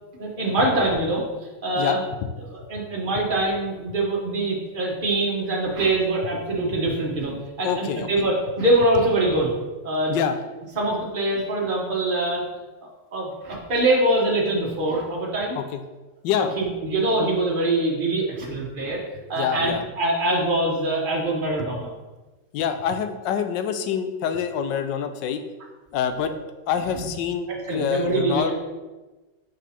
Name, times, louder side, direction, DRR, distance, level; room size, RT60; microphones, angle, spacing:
voice 1, 0.2-1.2 1.6-2.0 2.5-9.5 9.8-10.2 10.7-12.4 12.8-15.6 16.3-19.0 19.3-21.9 27.0-27.1 27.5-28.5, right 2 dB, 30° right, -3 dB, 1.4 m, -24 dB
voice 2, 7.6-8.1 10.1-10.4 15.6-15.8 16.2-16.5 19.3-19.8 22.5-25.4 25.9-26.3 26.7-28.5, left 8 dB, 90° left, 9 dB, 1.3 m, -26 dB
6.1 x 5.3 x 4.3 m, 1.2 s
omnidirectional pair, 1.9 m